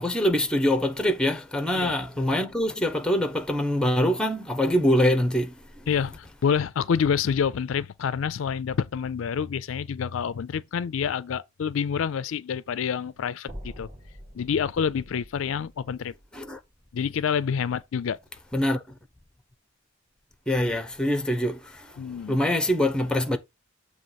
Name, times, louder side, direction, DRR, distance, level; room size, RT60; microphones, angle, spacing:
voice 1, 0.0-5.5 16.3-16.6 18.5-18.8 20.5-21.9 22.3-23.4, left 1 dB, 5° left, 0.9 m, -24 dB
voice 2, 5.9-13.9 14.3-16.1 16.9-18.2 22.0-22.4, left 7 dB, 70° left, 0.4 m, -27 dB
sound 1, 13.5-17.7, equal, 20° right, 2.5 m, -46 dB
7.5 x 3.0 x 5.7 m
head